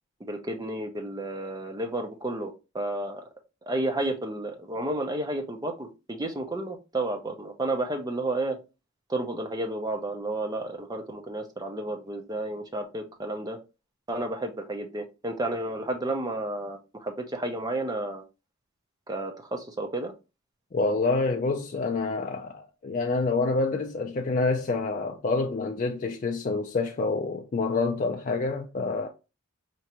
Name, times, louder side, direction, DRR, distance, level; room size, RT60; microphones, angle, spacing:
voice 1, 0.2-3.3 3.7-8.6 9.1-13.6 14.1-18.2 19.1-20.1, right 2 dB, 15° right, 0.5 m, -31 dB
voice 2, 20.7-29.1, left 3 dB, 35° left, 0.4 m, -27 dB
4.4 x 2.5 x 2.9 m
head